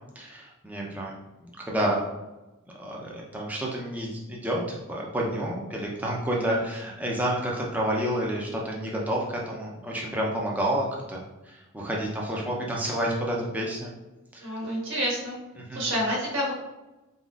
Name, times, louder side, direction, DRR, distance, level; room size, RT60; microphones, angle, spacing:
voice 1, 0.2-1.1 1.7-2.0 2.8-13.9 14.3-14.5 15.7-15.9, right 1 dB, 5° right, -3 dB, 0.5 m, -29 dB
voice 2, 14.4-15.3 15.7-16.5, equal, 60° right, -6 dB, 1.5 m, -28 dB
4.1 x 4.0 x 2.4 m, 1.1 s
head